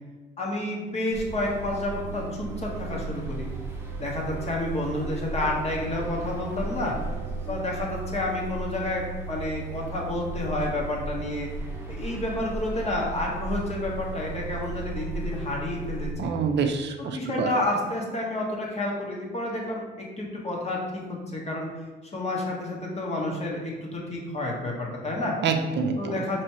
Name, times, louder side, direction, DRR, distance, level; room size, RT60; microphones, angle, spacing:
voice 1, 0.4-3.5 4.0-7.1 7.4-11.5 11.9-16.3 17.0-21.7 22.1-25.4 26.0-26.4, left 1 dB, 35° left, -2 dB, 1.1 m, -30 dB
sound 1, 1.1-16.1, right 3 dB, 10° right, 0.8 m, -35 dB
voice 2, 16.2-17.5 25.4-26.3, right 5 dB, 60° right, 5 dB, 0.4 m, -27 dB
4.4 x 3.0 x 2.9 m, 1.3 s
cardioid pair, 90°, 20 cm